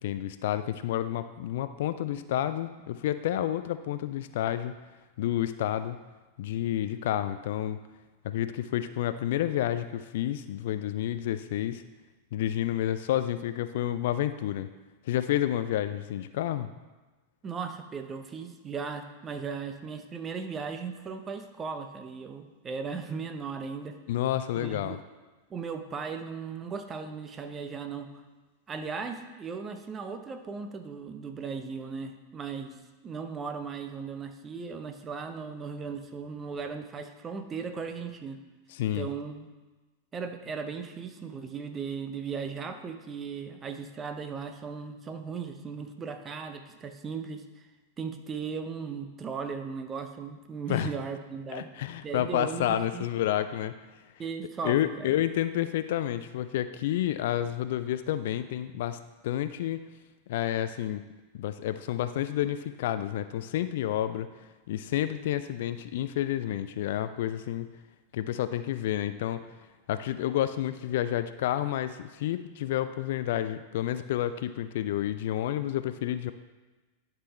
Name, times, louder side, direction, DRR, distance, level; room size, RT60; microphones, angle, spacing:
voice 1, 0.0-4.7 5.2-6.0 6.4-7.8 8.2-11.8 12.3-14.7 15.0-16.7 24.1-25.0 38.7-39.1 50.7-50.9 51.5-53.7 54.6-59.8 60.3-61.0 61.3-64.3 64.7-67.7 68.1-69.4 69.9-76.3, left 12 dB, 55° left, 12 dB, 0.4 m, -30 dB
voice 2, 17.4-24.0 24.6-25.0 25.5-28.2 28.7-32.7 33.0-38.4 38.9-39.5 40.1-47.7 48.0-51.7 52.0-53.1 54.2-55.1, right 5 dB, 20° right, 7 dB, 0.8 m, -37 dB
11.0 x 6.0 x 3.3 m, 1.2 s
figure-of-eight pair, 90°, 0 cm